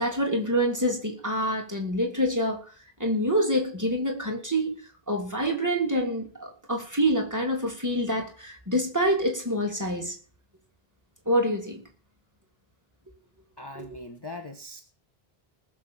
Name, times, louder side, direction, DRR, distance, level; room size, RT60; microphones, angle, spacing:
voice 1, 0.0-2.6 3.0-4.8 5.1-10.1 11.3-11.8 13.7-13.9, equal, 15° right, 1 dB, 3.1 m, -26 dB
voice 2, 13.6-14.8, left 2 dB, 25° left, 4 dB, 1.2 m, -40 dB
19.5 x 6.8 x 7.2 m, 0.41 s
omnidirectional pair, 1.0 m